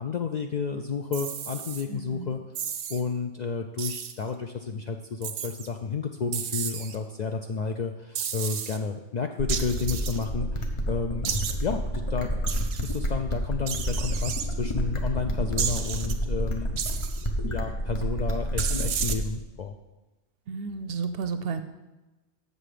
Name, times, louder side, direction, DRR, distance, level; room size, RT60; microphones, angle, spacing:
voice 1, 0.0-2.4 2.9-11.3 11.6-12.3 12.8-16.7 17.5-19.7, left 5 dB, 60° left, 4 dB, 0.5 m, -31 dB
sound 1, 1.1-1.8 2.6-3.0 3.8-4.2 5.2-5.7 6.3-7.0 8.2-8.8 9.5-10.2 11.2-11.6 12.5-13.0 13.7-14.5 15.6-16.1 16.8-17.3 18.6-19.2, right 8 dB, 90° right, 1.0 m, -32 dB
voice 2, 1.9-2.3 20.5-21.6, right 5 dB, 65° right, 10 dB, 0.7 m, -32 dB
sound 2, 9.4-19.4, equal, 30° left, 0.8 m, -29 dB
7.7 x 6.6 x 5.0 m, 1.1 s
omnidirectional pair, 1.2 m